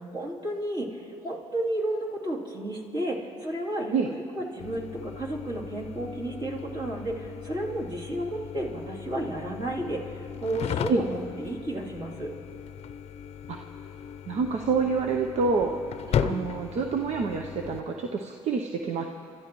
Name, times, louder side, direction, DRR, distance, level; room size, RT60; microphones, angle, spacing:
voice 1, 0.0-12.3 16.1-16.5, right 1 dB, 40° right, -4 dB, 3.1 m, -32 dB
sound 1, 4.6-17.8, left 8 dB, 55° left, 0.6 m, -36 dB
voice 2, 14.3-15.8 16.2-19.1, right 4 dB, 65° right, 3 dB, 0.7 m, -27 dB
28.5 x 13.0 x 3.1 m, 2.5 s
supercardioid pair, 75°, 12 cm